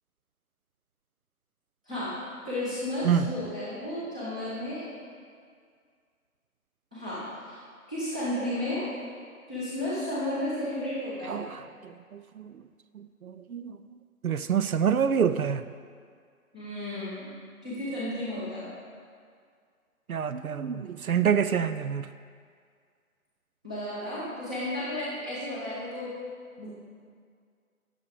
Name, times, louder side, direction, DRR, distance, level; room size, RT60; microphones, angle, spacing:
voice 1, 2.4-4.9 6.9-7.6 7.9-8.8 9.5-11.5 16.5-17.3 17.6-18.7 23.6-26.1 26.6-26.7, left 1 dB, 5° right, -12 dB, 0.7 m, -33 dB
voice 2, 11.8-12.5 13.0-13.7 14.2-15.6 20.1-22.1, right 7 dB, 70° right, 11 dB, 0.6 m, -27 dB
10.5 x 7.0 x 5.0 m, 2.1 s
figure-of-eight pair, 155°, 44 cm